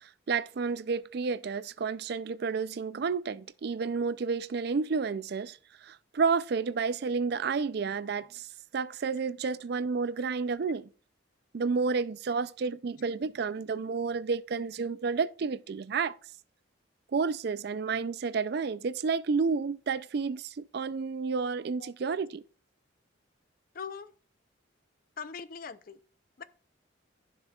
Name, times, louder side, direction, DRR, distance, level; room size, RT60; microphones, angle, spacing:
voice 1, 0.0-8.5 8.7-10.9 11.5-16.2 17.1-22.4, right 5 dB, 55° right, 0.4 m, -31 dB
voice 2, 23.7-24.1 25.2-26.0 26.4-26.5, left 6 dB, 45° left, 0.5 m, -41 dB
15.0 x 6.0 x 2.3 m
head